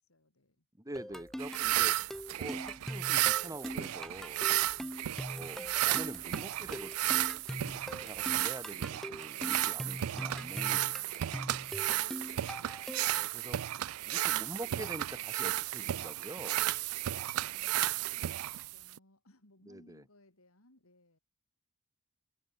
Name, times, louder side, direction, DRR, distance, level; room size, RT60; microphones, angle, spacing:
voice 1, 0.0-0.6 9.5-12.6 17.4-21.2, left 1 dB, 70° left, 4.5 m, -64 dB
voice 2, 0.8-1.9 2.4-4.4 5.2-7.3 7.6-11.3 13.1-13.6 14.0-16.7 19.7-20.0, right 1 dB, 15° right, 2.8 m, -46 dB
sound 1, 1.0-13.3, equal, ahead, 1.8 m, -42 dB
sound 2, 1.1-8.3, right 2 dB, 45° right, 4.0 m, -60 dB
sound 3, 1.4-19.0, right 14 dB, 75° right, 0.4 m, -33 dB
head